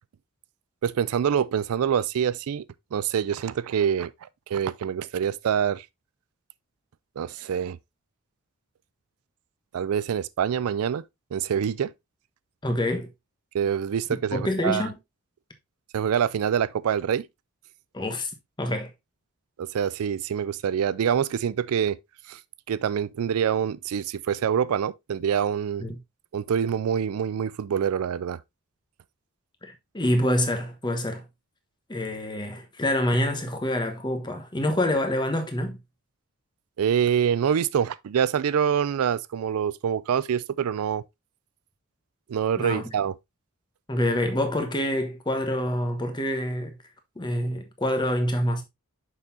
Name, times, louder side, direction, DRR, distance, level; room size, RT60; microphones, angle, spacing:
voice 1, 0.8-2.6 2.9-4.1 4.5-5.9 7.2-7.8 9.7-11.0 11.3-11.9 13.5-14.9 15.9-17.3 19.6-22.0 22.3-22.4 22.7-25.8 26.3-28.4 36.8-41.0 42.3-43.1, right 8 dB, 80° right, 0.4 m, -25 dB
voice 2, 12.6-13.1 14.1-15.0 17.9-18.3 18.6-18.9 25.8-26.0 29.6-31.2 31.9-35.8 42.6-42.9 43.9-46.8 47.2-48.6, left 1 dB, 20° left, 1.1 m, -26 dB
6.5 x 5.6 x 2.7 m
head